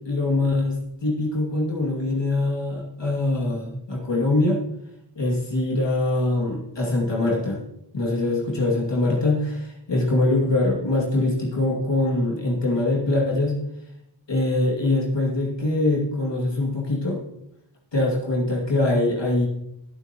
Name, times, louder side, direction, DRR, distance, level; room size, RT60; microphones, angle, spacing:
voice 1, 0.0-4.6 5.2-7.6 7.9-13.6 14.3-17.2 17.9-19.5, left 2 dB, 70° left, -4 dB, 2.6 m, -23 dB
23.0 x 7.9 x 3.0 m, 0.84 s
wide cardioid pair, 65°, 44 cm